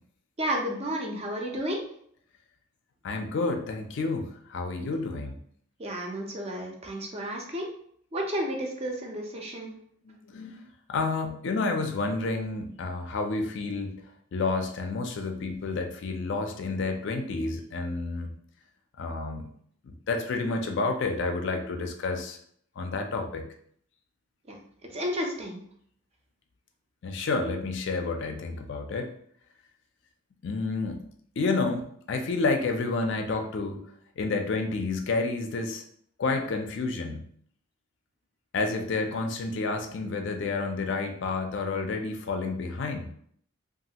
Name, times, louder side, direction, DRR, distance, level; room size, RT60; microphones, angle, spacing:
voice 1, 0.4-1.8 5.8-7.7 8.1-9.7 24.5-24.6 24.9-25.6, equal, 30° right, 1 dB, 0.5 m, -32 dB
voice 2, 3.0-5.3 10.0-14.0 14.3-18.3 19.0-19.5 19.8-22.4 22.8-23.5 27.0-29.1 30.4-31.0 31.4-33.8 34.2-35.8 36.2-37.3 38.5-43.1, left 3 dB, 60° left, 5 dB, 0.4 m, -30 dB
3.0 x 2.4 x 2.8 m, 0.63 s
head